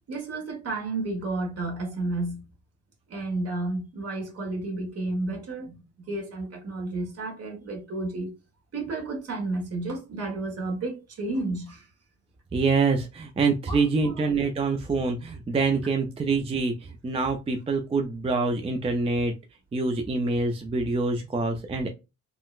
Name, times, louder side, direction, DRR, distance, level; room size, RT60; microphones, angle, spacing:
voice 1, 0.1-2.5 3.1-8.3 8.7-11.8 13.7-14.3, right 2 dB, 55° right, 1.4 m, -32 dB
voice 2, 12.5-19.3 19.7-21.9, right 4 dB, 20° right, 0.4 m, -25 dB
3.7 x 2.1 x 2.4 m
cardioid pair, 90°, 30 cm